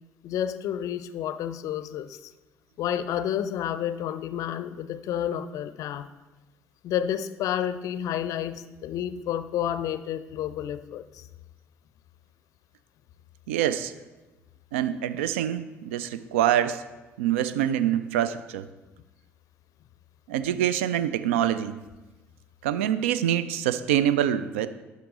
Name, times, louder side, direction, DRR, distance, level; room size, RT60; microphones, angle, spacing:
voice 1, 0.2-2.3 2.8-6.1 6.8-11.3, left 10 dB, 50° left, 13 dB, 0.4 m, -30 dB
voice 2, 13.5-13.9 14.7-16.8 17.2-18.7 20.3-21.8 22.6-24.7, right 10 dB, 70° right, 14 dB, 0.4 m, -25 dB
11.0 x 5.6 x 3.8 m, 1.1 s
figure-of-eight pair, 50°, 7 cm